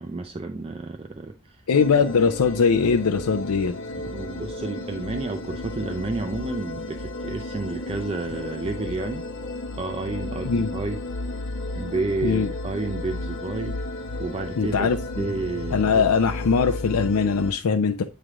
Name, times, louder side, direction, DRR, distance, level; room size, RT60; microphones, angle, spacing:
voice 1, 0.0-1.6 3.9-9.3 9.7-11.0 11.8-13.8 14.2-14.9 15.2-16.0, right 3 dB, 25° right, 0.4 m, -31 dB
voice 2, 1.7-3.7 10.5-10.7 12.2-12.5 14.6-15.3 15.7-18.0, left 5 dB, 85° left, 0.5 m, -21 dB
sound 1, 1.7-17.5, left 2 dB, 55° left, 0.8 m, -33 dB
8.8 x 3.2 x 3.6 m
head